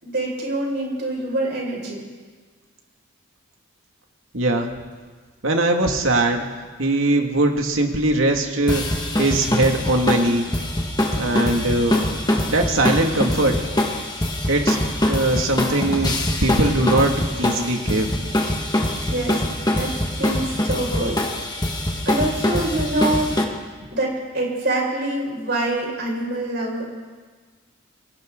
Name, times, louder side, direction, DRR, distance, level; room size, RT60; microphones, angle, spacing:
voice 1, 0.0-2.0 19.1-19.9 20.2-21.2 22.0-23.3 23.9-26.9, right 1 dB, 50° right, -2 dB, 6.1 m, -25 dB
voice 2, 4.3-4.7 5.4-6.5 6.8-8.8 9.2-10.5 11.2-12.0 12.5-13.5 14.5-14.8 15.1-16.2 16.4-18.1, right 2 dB, 75° right, 2 dB, 2.4 m, -20 dB
sound 1, 8.7-23.4, left 1 dB, 20° left, 1.9 m, -23 dB
29.5 x 23.5 x 4.0 m, 1.5 s
head